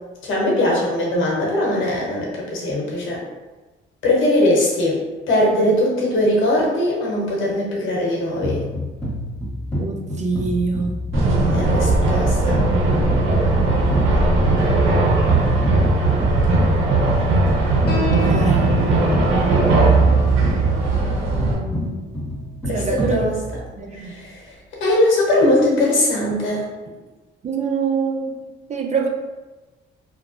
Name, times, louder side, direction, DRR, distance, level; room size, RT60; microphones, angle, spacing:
voice 1, 0.2-3.2 4.0-8.6 11.5-12.6 22.6-23.4 23.9-26.7, left 1 dB, 80° left, -3 dB, 0.9 m, -20 dB
sound 1, 8.4-23.8, equal, 10° left, 1.3 m, -28 dB
voice 2, 9.8-11.0 18.2-18.8 21.2-22.0 22.7-23.3 23.8-24.1 27.4-29.1, right 5 dB, 35° right, 3 dB, 0.4 m, -25 dB
sound 2, 11.1-21.5, right 2 dB, 85° right, 0.6 m, -18 dB
Piano, 17.9-24.9, left 1 dB, 55° left, 0.9 m, -35 dB
2.8 x 2.1 x 2.5 m, 1.2 s
cardioid pair, 90°, 20 cm